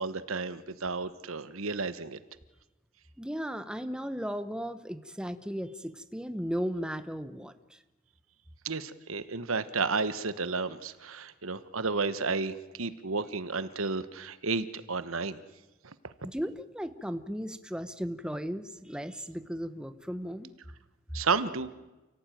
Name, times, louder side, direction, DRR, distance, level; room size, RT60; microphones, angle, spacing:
voice 1, 0.0-2.2 8.6-15.4 21.1-21.7, right 4 dB, 75° right, 13 dB, 1.2 m, -32 dB
voice 2, 3.2-7.8 16.2-20.5, equal, 5° right, 10 dB, 0.9 m, -36 dB
28.5 x 17.0 x 9.2 m, 1.1 s
head